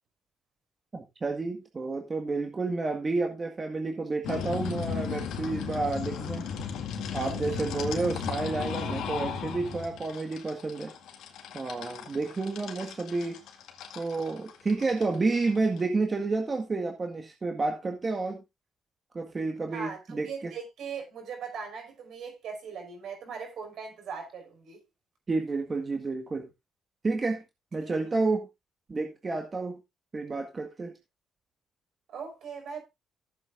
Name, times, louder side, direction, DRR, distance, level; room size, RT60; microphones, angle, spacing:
voice 1, 0.9-6.5 7.1-10.9 11.5-13.4 14.0-18.4 19.1-20.5 25.3-26.5 27.0-27.4 27.7-28.5 28.9-29.8 30.1-30.9, right 3 dB, 30° right, 1.9 m, -30 dB
sound 1, 4.2-15.8, left 6 dB, 85° left, 2.1 m, -35 dB
voice 2, 19.7-24.8 27.8-27.9 32.1-32.8, right 6 dB, 70° right, 5.5 m, -39 dB
15.0 x 8.0 x 2.6 m
cardioid pair, 90°, 0 cm